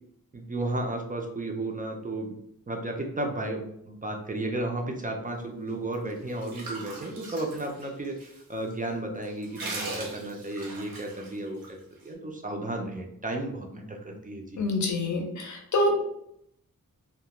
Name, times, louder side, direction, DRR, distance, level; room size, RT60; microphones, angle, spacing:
voice 1, 0.3-2.3 2.7-11.6 12.0-14.6, right 2 dB, 25° right, 2 dB, 0.3 m, -33 dB
sound 1, 5.9-8.4 8.7-8.8 9.2-11.7, right 2 dB, 90° right, 0.8 m, -39 dB
voice 2, 14.6-16.0, left 2 dB, 55° left, 2 dB, 0.6 m, -26 dB
2.3 x 2.1 x 2.8 m, 0.76 s
wide cardioid pair, 130°, 34 cm